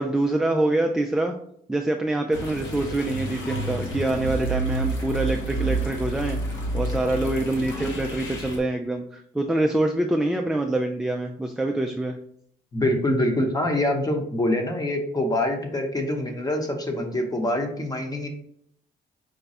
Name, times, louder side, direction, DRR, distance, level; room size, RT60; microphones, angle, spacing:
voice 1, 0.0-1.4 1.7-12.2, right 2 dB, 5° right, 3 dB, 0.3 m, -25 dB
sound 1, 2.3-8.6, right 2 dB, 70° left, 1.1 m, -29 dB
voice 2, 12.7-18.3, left 1 dB, 20° left, 3 dB, 0.9 m, -25 dB
5.0 x 2.2 x 4.1 m, 0.68 s
cardioid pair, 90°, 20 cm